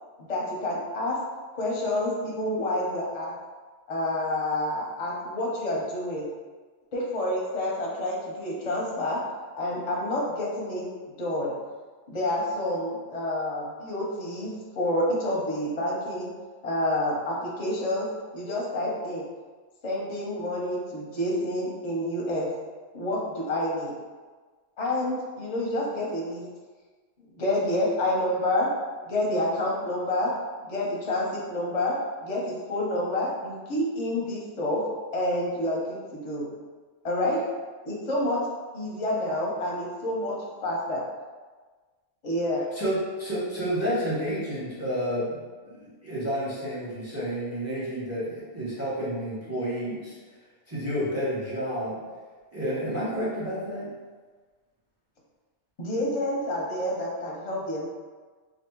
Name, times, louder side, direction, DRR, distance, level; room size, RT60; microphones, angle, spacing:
voice 1, 0.2-1.2 1.6-3.3 3.9-6.3 6.9-9.2 9.6-10.9 11.2-11.5 12.1-16.3 16.6-18.1 18.3-19.2 19.8-22.5 22.9-23.9 24.8-26.4 27.4-28.7 29.0-30.3 30.6-34.8 35.1-36.5 37.0-37.4 37.8-38.4 38.7-40.3 40.6-41.0 42.2-42.7 55.8-57.9, left 1 dB, 40° left, -4 dB, 0.6 m, -28 dB
voice 2, 42.7-45.4 45.7-50.1 50.7-52.0 52.5-53.9, equal, 15° right, -8 dB, 0.7 m, -30 dB
3.4 x 2.4 x 2.9 m, 1.4 s
omnidirectional pair, 1.2 m